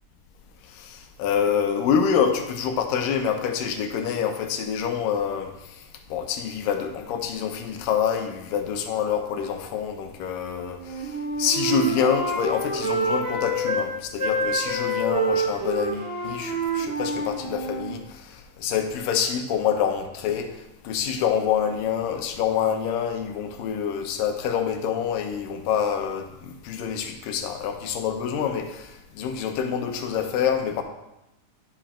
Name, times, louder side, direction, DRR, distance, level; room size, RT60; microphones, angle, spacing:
voice 1, 0.8-5.5 6.1-11.1 11.4-18.0 18.6-20.5 20.8-28.9 29.2-30.8, left 7 dB, 80° left, 6 dB, 2.4 m, -26 dB
Wind instrument woodwind instrument, 10.8-13.9 14.2-17.9, right 2 dB, 35° right, 1.5 m, -27 dB
11.0 x 5.1 x 4.3 m, 0.91 s
omnidirectional pair, 4.0 m